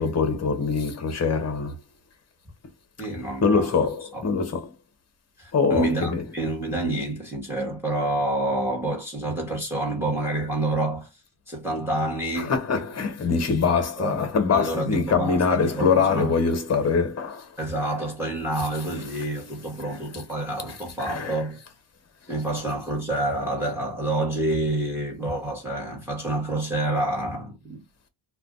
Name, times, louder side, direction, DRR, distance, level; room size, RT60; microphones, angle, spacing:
voice 1, 0.0-1.8 3.4-4.7 5.5-6.2 12.4-17.5 20.7-21.5, left 5 dB, 30° left, 0.8 m, -24 dB
voice 2, 3.0-3.7 4.1-4.2 5.4-11.1 11.5-12.6 14.0-14.1 14.5-16.3 17.6-21.6 22.3-27.8, right 2 dB, 5° right, 1.1 m, -28 dB
2.4 x 2.2 x 3.7 m
wide cardioid pair, 150°, 49 cm